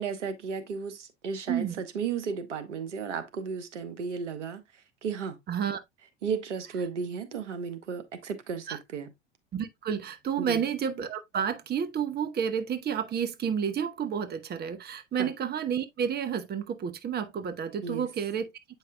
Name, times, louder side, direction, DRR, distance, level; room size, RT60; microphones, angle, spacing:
voice 1, 0.0-5.4 6.2-9.1 10.4-10.6 15.1-15.3 17.8-18.1, right 6 dB, 85° right, 1.1 m, -34 dB
voice 2, 5.5-5.8 8.7-8.8 9.5-18.5, right 7 dB, 25° right, 0.9 m, -30 dB
8.4 x 5.3 x 2.2 m
hypercardioid pair, 80°, 35 cm